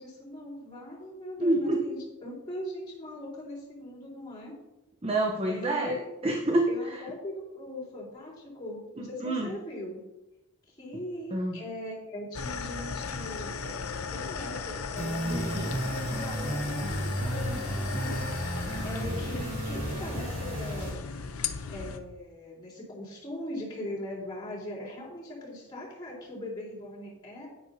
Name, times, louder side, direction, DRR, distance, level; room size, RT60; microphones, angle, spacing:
voice 1, 0.0-4.6 5.5-6.0 6.7-10.0 10.7-18.4 18.8-21.0 21.7-27.5, left 1 dB, 20° left, -7 dB, 3.7 m, -40 dB
voice 2, 1.4-1.8 5.0-6.7 9.0-9.5 11.3-11.6 15.3-15.7, right 1 dB, 25° right, 1 dB, 0.8 m, -28 dB
sound 1, 12.3-22.0, left 5 dB, 90° left, 0.7 m, -36 dB
sound 2, 15.0-20.9, right 1 dB, 45° right, 3.3 m, -33 dB
9.8 x 9.5 x 2.7 m, 0.93 s
head